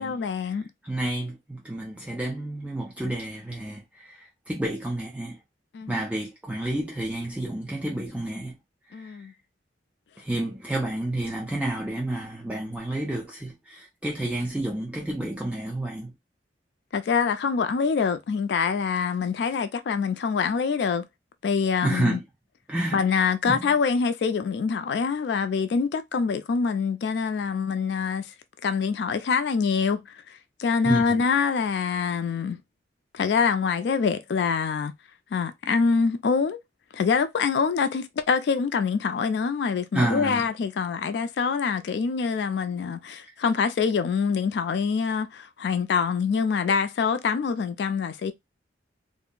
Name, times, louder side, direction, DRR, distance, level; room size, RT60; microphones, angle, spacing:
voice 1, 0.0-0.7 5.7-6.0 8.9-9.3 16.9-21.1 21.4-22.2 22.9-28.3 28.6-32.6 33.1-34.9 35.3-36.6 36.9-48.3, left 5 dB, 65° left, 0.3 m, -25 dB
voice 2, 0.8-5.4 5.9-8.6 8.9-9.3 10.2-16.1 21.8-22.2 22.7-23.0 23.5-23.7 30.8-31.2 39.9-40.5, right 1 dB, 5° right, 0.4 m, -30 dB
2.5 x 2.0 x 3.6 m
head